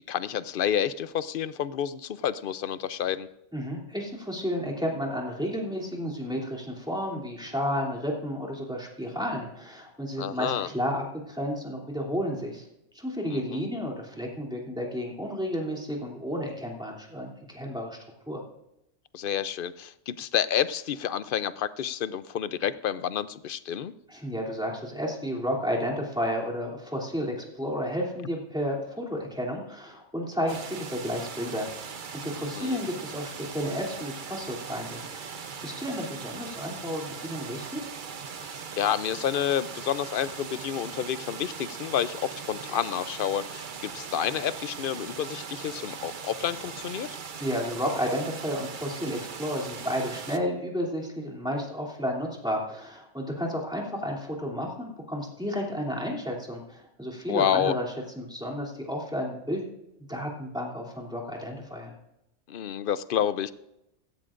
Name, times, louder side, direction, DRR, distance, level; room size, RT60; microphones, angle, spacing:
voice 1, 0.1-3.3 10.2-10.7 13.3-13.7 19.1-23.9 32.4-32.8 38.8-47.1 57.3-57.7 62.5-63.5, left 9 dB, 55° left, 15 dB, 0.7 m, -29 dB
voice 2, 3.5-12.6 12.9-18.0 18.3-18.4 24.1-31.7 32.1-35.3 35.6-37.8 47.4-57.8 58.1-59.6 60.1-61.9, equal, 5° right, -3 dB, 2.9 m, -32 dB
sound 1, 30.5-50.4, right 6 dB, 50° right, 0.8 m, -40 dB
16.5 x 16.5 x 2.5 m, 0.86 s
omnidirectional pair, 1.2 m